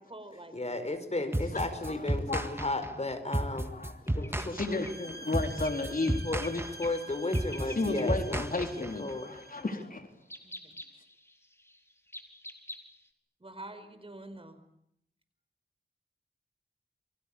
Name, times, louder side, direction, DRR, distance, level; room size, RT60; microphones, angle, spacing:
voice 1, 0.0-0.8 9.3-9.7 10.4-10.8 13.4-14.6, right 2 dB, 35° right, 10 dB, 4.9 m, -47 dB
voice 2, 0.5-3.7 4.1-4.6 6.2-6.4 6.8-9.3, left 2 dB, 40° left, 9 dB, 4.7 m, -34 dB
sound 1, 1.3-9.1, right 1 dB, 15° right, 1.8 m, -33 dB
voice 3, 1.5-2.6 3.5-6.6 7.8-10.1, left 3 dB, 55° left, 6 dB, 3.8 m, -34 dB
sound 2, 2.6-2.7 4.1-6.6 6.8-7.1 7.3-8.1 8.3-8.4 9.1-9.3 10.2-13.1, left 1 dB, 15° left, 4.4 m, -47 dB
sound 3, 4.5-9.8, right 2 dB, 70° right, 3.2 m, -48 dB
28.5 x 24.0 x 8.6 m, 0.75 s
wide cardioid pair, 80°, 17 cm